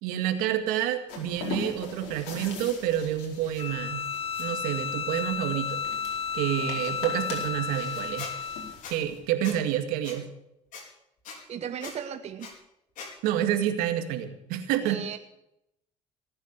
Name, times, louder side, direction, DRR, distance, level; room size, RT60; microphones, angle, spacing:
voice 1, 0.0-4.1 4.4-5.9 6.3-8.3 8.9-10.3 13.2-15.0, right 11 dB, 80° right, 7 dB, 2.1 m, -28 dB
sound 1, 1.1-9.2, left 4 dB, 80° left, 4.7 m, -42 dB
Bowed string instrument, 3.6-8.8, left 7 dB, 40° left, 0.7 m, -33 dB
Squeak, 8.2-8.3 8.8-8.9 9.4-9.6 10.0-10.2 10.7-10.8 11.2-11.4 11.8-11.9 12.4-12.5 13.0-13.1, left 5 dB, 65° left, 4.7 m, -40 dB
voice 2, 11.5-12.5 14.8-15.2, right 9 dB, 45° right, 8 dB, 1.2 m, -36 dB
19.0 x 9.2 x 8.1 m, 0.83 s
supercardioid pair, 80°, 15 cm